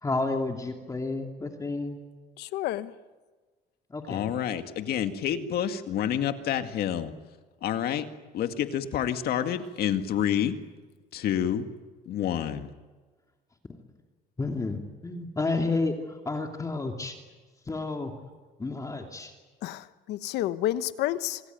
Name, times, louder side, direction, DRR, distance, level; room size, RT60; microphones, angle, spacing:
voice 1, 0.0-2.0 3.9-4.3 13.7-13.8 14.4-17.2 17.7-18.1 18.6-19.3, left 3 dB, 20° left, 3 dB, 2.7 m, -31 dB
voice 2, 2.4-2.9 19.6-21.4, left 14 dB, 85° left, 13 dB, 1.1 m, -30 dB
voice 3, 4.1-7.1 7.6-8.1 8.3-10.6 11.1-11.7 12.1-12.7, left 9 dB, 65° left, 7 dB, 2.0 m, -28 dB
26.5 x 20.5 x 9.4 m, 1.3 s
cardioid pair, 110°, 17 cm